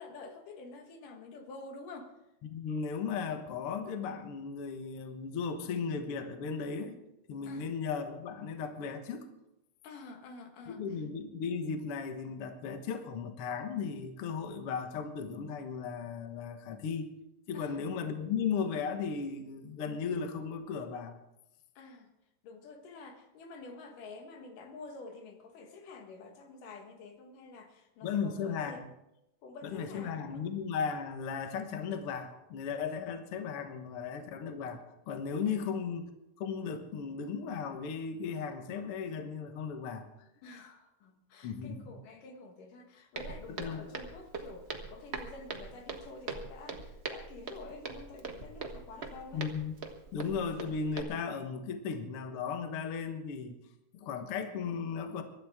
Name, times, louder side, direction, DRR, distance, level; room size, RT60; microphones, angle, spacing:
voice 1, 0.0-2.1 7.5-7.7 9.8-11.0 17.5-17.8 21.8-22.1 22.4-28.9 29.4-30.5 35.5-35.6 40.4-49.5, left 3 dB, 85° left, 5 dB, 3.2 m, -49 dB
voice 2, 2.4-7.0 7.3-9.3 10.7-17.1 17.5-21.2 28.0-28.8 29.6-36.1 36.4-40.1 41.4-41.8 43.5-43.9 49.3-49.8 50.1-53.6 53.9-55.2, left 6 dB, 55° left, 6 dB, 1.9 m, -36 dB
Walk footsteps, 43.1-51.0, right 4 dB, 80° right, 0.5 m, -42 dB
24.0 x 13.0 x 3.6 m, 0.88 s
omnidirectional pair, 3.6 m